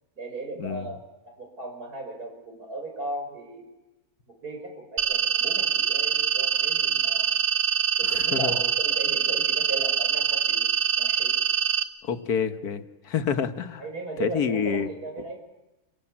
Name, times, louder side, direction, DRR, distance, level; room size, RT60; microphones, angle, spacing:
voice 1, 0.2-1.0 1.2-3.7 4.3-7.3 8.0-10.7 11.0-11.3 13.8-15.4, right 2 dB, 85° right, 3 dB, 6.1 m, -36 dB
sound 1, 5.0-11.8, right 8 dB, 65° right, 1.9 m, -24 dB
voice 2, 8.0-8.5 12.0-13.8 14.2-14.9, left 7 dB, 85° left, 9 dB, 1.7 m, -28 dB
28.5 x 18.0 x 8.6 m, 1.1 s
omnidirectional pair, 1.6 m